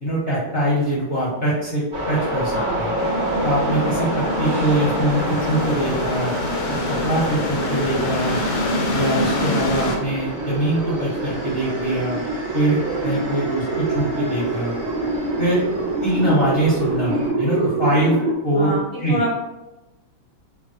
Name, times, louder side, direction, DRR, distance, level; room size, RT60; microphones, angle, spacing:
voice 1, 0.0-2.9 3.4-6.3 6.9-8.4 8.9-12.2 12.5-14.7 15.4-15.6 16.0-18.2 18.4-19.2, right 1 dB, 50° left, -8 dB, 0.7 m, -22 dB
sound 1, 1.9-17.3, right 1 dB, 40° right, 0.8 m, -29 dB
voice 2, 2.5-3.1 18.5-18.8 19.1-19.4, equal, 55° right, -10 dB, 0.5 m, -27 dB
sound 2, 3.0-10.0, left 2 dB, 80° left, 1.4 m, -26 dB
sound 3, 5.7-18.3, right 2 dB, 85° right, 1.4 m, -28 dB
3.3 x 2.1 x 2.7 m, 1.0 s
omnidirectional pair, 2.2 m